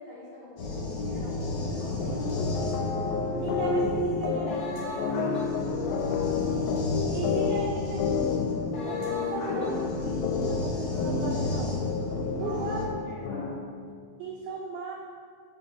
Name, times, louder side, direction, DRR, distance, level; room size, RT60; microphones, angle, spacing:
voice 1, 0.0-3.1 5.9-6.5 12.4-12.6 13.0-13.6, left 1 dB, 45° left, -11 dB, 1.2 m, -46 dB
sound 1, 0.6-12.8, left 2 dB, 60° left, 1.8 m, -33 dB
sound 2, 2.0-13.8, left 5 dB, 85° left, 2.0 m, -30 dB
voice 2, 3.4-5.6 7.1-8.0 8.8-11.9 12.4-12.8 14.2-14.9, right 4 dB, 90° right, -2 dB, 1.3 m, -37 dB
8.5 x 4.5 x 2.8 m, 2.1 s
omnidirectional pair, 3.4 m